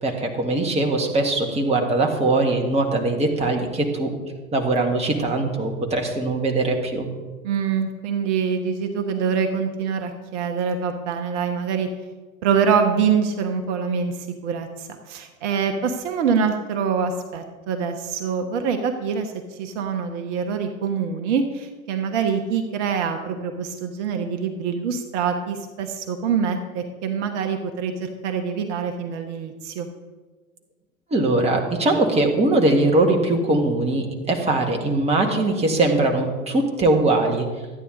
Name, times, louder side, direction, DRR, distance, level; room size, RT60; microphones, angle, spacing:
voice 1, 0.0-4.1 4.5-7.1 31.1-37.5, right 2 dB, 15° right, 2 dB, 1.7 m, -21 dB
voice 2, 7.4-11.9 12.4-29.9, right 6 dB, 55° right, 5 dB, 1.1 m, -25 dB
12.5 x 9.3 x 3.8 m, 1.3 s
figure-of-eight pair, 85°, 42 cm